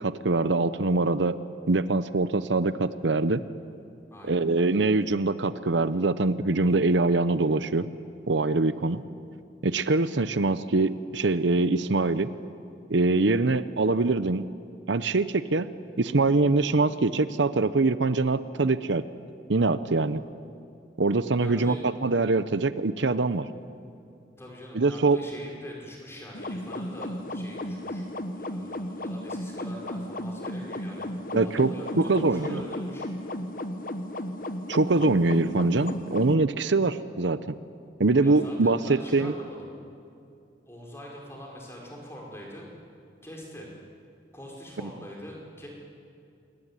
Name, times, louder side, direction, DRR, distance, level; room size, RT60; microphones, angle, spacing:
voice 1, 0.0-1.4 1.7-3.4 4.2-7.9 8.3-9.0 9.6-12.3 12.9-14.4 14.9-15.7 16.0-19.0 19.5-20.2 21.0-21.7 22.0-23.5 24.7-25.2 31.3-31.7 32.0-32.6 34.7-37.6 38.0-39.3, right 3 dB, 80° right, 13 dB, 0.8 m, -23 dB
voice 2, 4.1-4.5 8.7-8.9 21.4-21.9 24.4-33.3 38.2-39.7 40.7-42.7 43.2-43.7 44.3-45.7, equal, 15° left, -2 dB, 5.3 m, -44 dB
sound 1, 26.3-36.3, left 1 dB, 45° left, 1.2 m, -34 dB
27.5 x 21.5 x 9.9 m, 2.6 s
head